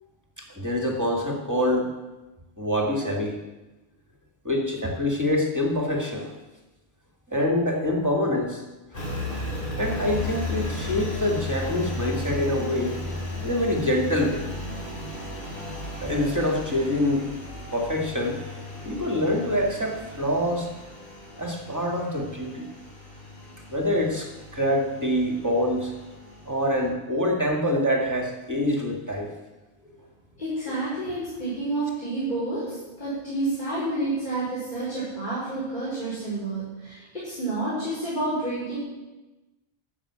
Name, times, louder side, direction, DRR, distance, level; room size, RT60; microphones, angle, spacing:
voice 1, 0.4-1.9 2.6-3.4 4.4-6.3 7.3-8.6 9.3-9.4 9.8-13.0 13.4-14.4 16.0-17.3 17.7-18.4 18.8-20.7 21.3-22.7 23.7-25.9 26.5-29.3, left 1 dB, 15° right, 0 dB, 2.0 m, -25 dB
Engine, 8.9-26.9, left 1 dB, 60° left, 4.3 m, -35 dB
voice 2, 30.4-38.8, right 2 dB, 45° left, -9 dB, 5.2 m, -29 dB
13.0 x 7.3 x 8.6 m, 1.1 s
omnidirectional pair, 1.1 m